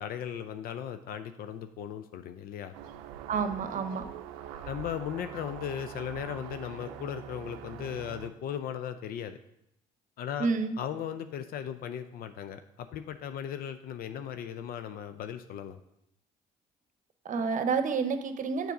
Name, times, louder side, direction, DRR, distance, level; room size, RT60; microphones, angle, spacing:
voice 1, 0.0-2.7 4.7-9.4 10.2-10.5 10.8-15.8, left 9 dB, 60° left, 10 dB, 0.5 m, -37 dB
sound 1, 2.7-8.3, right 10 dB, 80° right, 0.5 m, -43 dB
voice 2, 3.3-4.0 10.4-10.7 17.2-18.7, right 5 dB, 50° right, 9 dB, 0.8 m, -29 dB
6.8 x 3.9 x 6.0 m, 0.80 s
hypercardioid pair, 60°, 18 cm